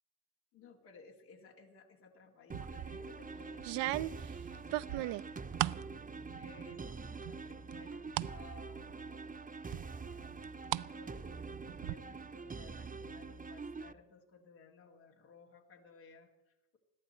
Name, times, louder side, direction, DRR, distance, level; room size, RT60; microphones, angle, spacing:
voice 1, 0.5-4.2 4.5-5.4 6.3-16.8, left 4 dB, 85° left, -1 dB, 2.4 m, -59 dB
sound 1, 2.5-13.9, right 4 dB, 15° right, 0.8 m, -45 dB
sound 2, 2.5-3.0 3.6-5.9 6.3-6.9 7.2-8.3 8.8-8.9 9.7-10.9 11.2-11.9, right 17 dB, 60° right, 0.6 m, -37 dB
21.0 x 14.0 x 4.4 m, 0.96 s
hypercardioid pair, 55°, 48 cm